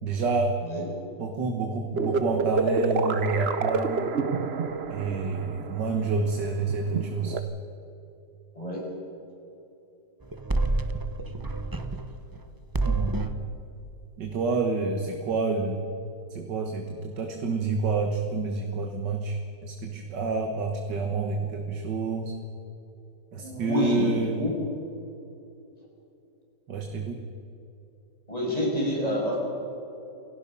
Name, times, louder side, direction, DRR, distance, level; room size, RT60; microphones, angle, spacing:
voice 1, 0.0-0.6 1.2-4.1 4.9-7.4 12.8-13.2 14.2-15.8 16.3-22.4 23.3-24.5 26.7-27.2, right 4 dB, 80° right, 3 dB, 2.1 m, -28 dB
sound 1, 2.0-7.4, right 4 dB, 45° right, 1.0 m, -29 dB
voice 2, 8.5-8.9 23.3-24.1 24.4-24.5 28.3-29.4, left 1 dB, 20° left, -3 dB, 6.2 m, -28 dB
sound 2, 10.2-12.4 12.7-13.4, right 2 dB, 15° right, 0.7 m, -28 dB
28.0 x 17.0 x 5.6 m, 2.9 s
omnidirectional pair, 1.9 m